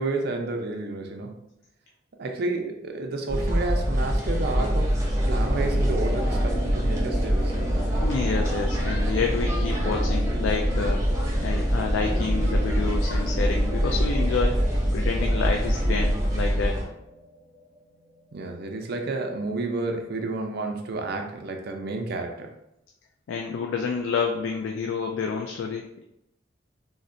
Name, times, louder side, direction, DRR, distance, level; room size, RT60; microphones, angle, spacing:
voice 1, 0.0-1.4 2.1-4.9 5.2-7.8 18.3-22.5, right 2 dB, 60° right, 3 dB, 0.5 m, -31 dB
sound 1, 3.3-16.8, equal, 15° right, 0.7 m, -24 dB
sound 2, 4.7-18.4, right 1 dB, 20° left, 0.7 m, -37 dB
voice 2, 8.0-11.0 11.4-14.6 14.9-16.8 23.3-26.0, left 5 dB, 90° left, 2 dB, 0.3 m, -29 dB
3.7 x 2.1 x 2.5 m, 0.84 s
head